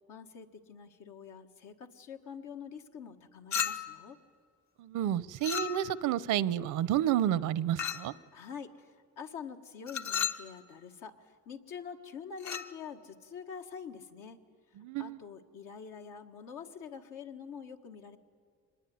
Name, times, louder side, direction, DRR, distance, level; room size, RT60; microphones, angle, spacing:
voice 1, 0.1-4.2 8.3-14.4 15.0-18.2, left 6 dB, 85° left, 1.8 m, -46 dB
Chink clink, 3.5-4.1 5.4-6.1 7.8-8.2 9.9-10.5 12.4-12.7, left 7 dB, 70° left, 1.2 m, -34 dB
voice 2, 4.8-8.1 14.8-15.2, right 11 dB, 85° right, 0.8 m, -30 dB
25.0 x 20.5 x 9.5 m
cardioid pair, 90°, 30 cm